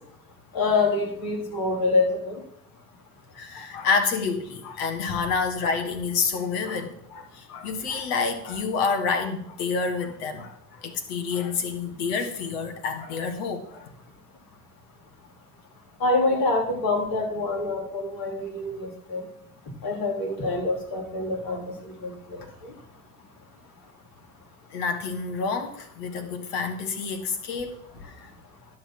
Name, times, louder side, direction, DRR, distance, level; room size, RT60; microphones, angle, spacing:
voice 1, 0.5-2.4 16.0-19.2 19.8-21.6 22.0-22.1, left 3 dB, 50° left, 1 dB, 3.3 m, -25 dB
voice 2, 3.3-13.9 24.7-27.8 28.0-28.3, left 5 dB, 70° left, 7 dB, 1.6 m, -28 dB
11.5 x 5.6 x 6.0 m, 0.72 s
hypercardioid pair, 60°, 47 cm